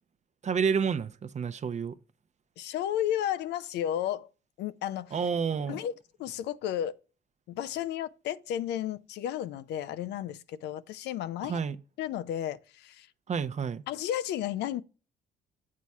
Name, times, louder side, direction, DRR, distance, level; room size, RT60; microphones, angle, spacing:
voice 1, 0.4-2.0 5.1-5.8 11.4-11.8 13.3-13.8, right 6 dB, 40° right, 0.7 m, -29 dB
voice 2, 2.6-4.3 4.6-5.1 5.7-5.9 6.2-7.0 7.5-11.6 12.0-13.1 13.9-14.8, left 11 dB, 70° left, 0.5 m, -33 dB
7.4 x 4.1 x 4.7 m
hypercardioid pair, 60°, 18 cm